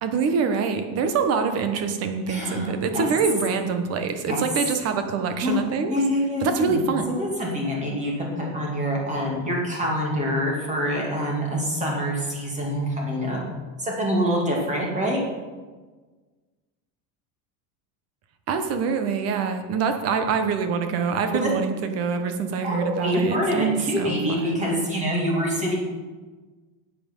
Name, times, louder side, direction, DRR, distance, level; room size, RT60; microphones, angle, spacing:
voice 1, 0.0-5.9 6.4-7.1 18.5-24.7, right 5 dB, 35° right, 7 dB, 1.2 m, -25 dB
voice 2, 2.3-3.1 4.3-4.4 5.4-5.6 5.9-6.8 7.2-13.4 13.8-15.2 21.4-21.5 22.6-25.7, equal, 15° right, -2 dB, 2.4 m, -26 dB
13.0 x 8.9 x 5.4 m, 1.4 s
cardioid pair, 170°, 43 cm